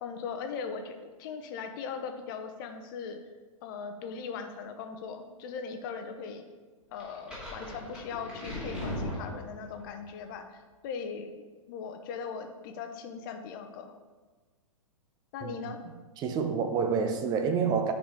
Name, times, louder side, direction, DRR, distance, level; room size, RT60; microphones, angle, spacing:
voice 1, 0.0-3.2 3.6-6.4 6.9-13.9 15.3-15.8, left 6 dB, 40° left, 0.9 m, -39 dB
sound 1, 7.0-9.9, left 1 dB, 5° right, 2.5 m, -38 dB
voice 2, 15.4-15.7 16.2-17.9, right 6 dB, 25° right, 0.7 m, -28 dB
10.0 x 5.0 x 3.7 m
figure-of-eight pair, 115°, 18 cm